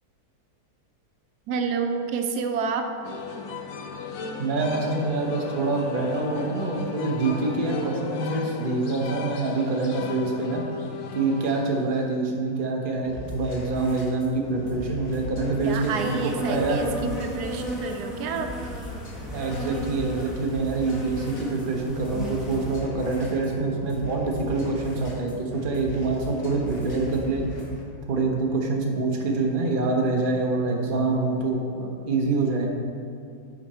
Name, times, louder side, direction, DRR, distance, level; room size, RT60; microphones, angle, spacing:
voice 1, 1.5-2.9 15.6-18.5, right 5 dB, 85° right, 5 dB, 1.2 m, -29 dB
sound 1, 3.0-12.2, left 5 dB, 75° left, 1.2 m, -36 dB
voice 2, 4.4-10.6 11.1-16.9 19.3-27.4 28.1-32.7, right 3 dB, 40° right, 0 dB, 1.0 m, -26 dB
sound 2, 13.0-27.8, equal, 55° left, 1.6 m, -39 dB
Insect, 15.6-22.8, equal, ahead, 0.9 m, -36 dB
8.9 x 5.0 x 4.2 m, 2.5 s
omnidirectional pair, 1.7 m